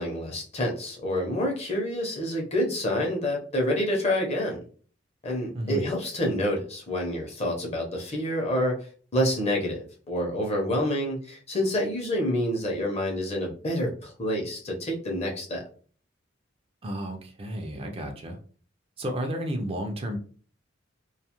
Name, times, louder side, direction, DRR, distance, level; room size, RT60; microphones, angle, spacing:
voice 1, 0.0-4.6 5.2-8.9 9.1-15.6, equal, 35° left, 0 dB, 0.7 m, -28 dB
voice 2, 5.5-5.9 16.8-18.4 19.0-20.2, equal, 30° right, 3 dB, 0.4 m, -32 dB
2.4 x 2.3 x 2.9 m, 0.43 s
head